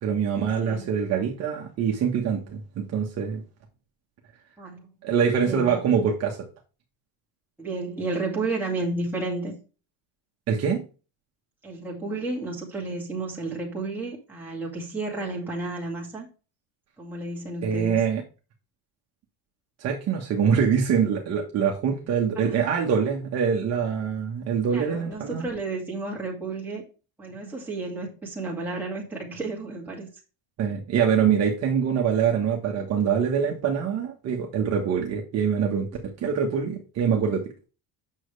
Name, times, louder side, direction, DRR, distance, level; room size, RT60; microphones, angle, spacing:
voice 1, 0.0-3.4 5.0-6.4 10.5-10.8 17.6-18.2 19.8-25.5 30.6-37.7, right 7 dB, 40° right, 0 dB, 1.3 m, -24 dB
voice 2, 0.6-1.0 4.6-4.8 5.4-5.8 7.6-9.6 11.6-16.3 17.0-18.0 22.3-22.6 24.7-26.8 27.2-30.1, right 3 dB, 5° right, -4 dB, 2.2 m, -32 dB
8.9 x 6.6 x 3.3 m, 0.34 s
cardioid pair, 175°, 40 cm